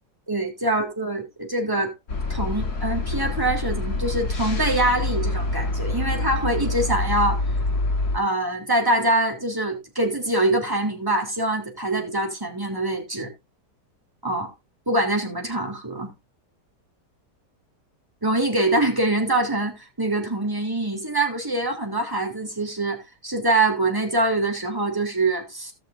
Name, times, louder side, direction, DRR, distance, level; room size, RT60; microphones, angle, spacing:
voice 1, 0.3-1.9 2.3-7.4 8.1-13.3 14.2-14.5 14.9-16.1 18.2-25.7, right 2 dB, 10° right, 3.3 m, -24 dB
sound 1, 2.1-8.2, left 2 dB, 60° left, 2.8 m, -26 dB
18.5 x 6.1 x 2.6 m
omnidirectional pair, 1.8 m